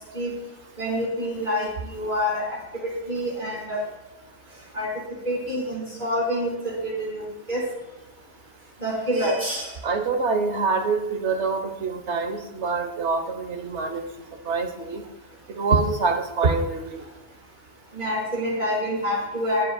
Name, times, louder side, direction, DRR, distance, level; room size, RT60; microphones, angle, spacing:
voice 1, 0.8-3.8 4.7-4.9 5.2-7.6 8.8-9.8 17.9-19.7, equal, 40° right, -6 dB, 4.6 m, -27 dB
voice 2, 9.8-14.0 14.4-15.0 15.5-17.0, right 4 dB, 65° right, 6 dB, 1.4 m, -25 dB
21.5 x 7.7 x 2.3 m, 1.1 s
omnidirectional pair, 1.3 m